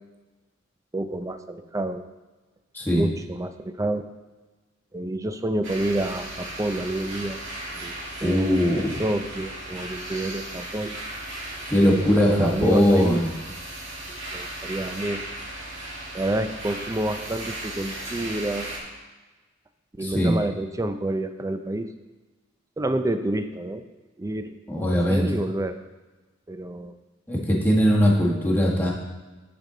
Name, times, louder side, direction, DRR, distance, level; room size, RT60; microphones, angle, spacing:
voice 1, 0.9-2.0 3.0-4.0 4.9-7.4 7.7-11.0 11.8-13.2 14.1-15.3 16.1-18.7 20.0-21.9 22.8-23.8 24.2-25.8 26.5-27.0, right 1 dB, 15° right, 9 dB, 0.4 m, -29 dB
voice 2, 2.7-3.0 8.2-8.9 11.7-13.3 20.0-20.4 24.7-25.4 27.3-28.9, equal, 10° left, -3 dB, 1.4 m, -20 dB
sound 1, 5.6-18.8, right 1 dB, 70° right, 2.2 m, -36 dB
10.5 x 5.3 x 3.8 m, 1.2 s
head